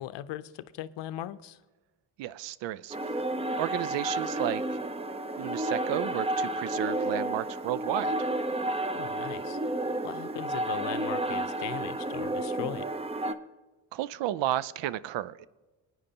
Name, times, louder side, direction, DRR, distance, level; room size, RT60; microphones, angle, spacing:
voice 1, 0.0-1.6 8.9-9.6 10.0-12.9, left 12 dB, 70° left, 15 dB, 0.6 m, -39 dB
voice 2, 2.2-3.2 3.6-4.8 5.4-8.3 13.9-15.5, right 13 dB, 75° right, 18 dB, 0.6 m, -33 dB
sound 1, 2.9-13.3, right 1 dB, 15° right, 0.7 m, -31 dB
21.0 x 9.3 x 2.9 m, 1.1 s
supercardioid pair, 55°, 44 cm